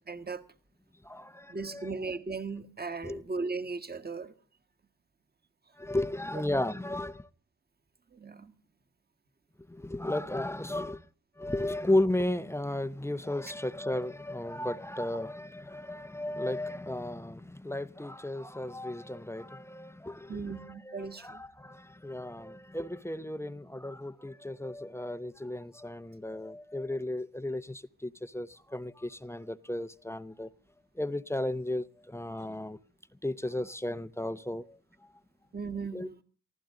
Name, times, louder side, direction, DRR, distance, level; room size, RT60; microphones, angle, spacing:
voice 1, 0.1-0.4 1.5-4.3 8.1-8.5 20.3-21.4 32.4-32.5 35.5-36.2, right 4 dB, 30° right, 1.6 m, -37 dB
voice 2, 1.0-2.2 3.0-3.2 5.8-7.3 9.7-11.0 11.4-30.5 31.0-32.8 33.2-34.8 35.9-36.1, left 1 dB, 10° left, 0.7 m, -34 dB
24.0 x 15.0 x 3.8 m
cardioid pair, 85°, 33 cm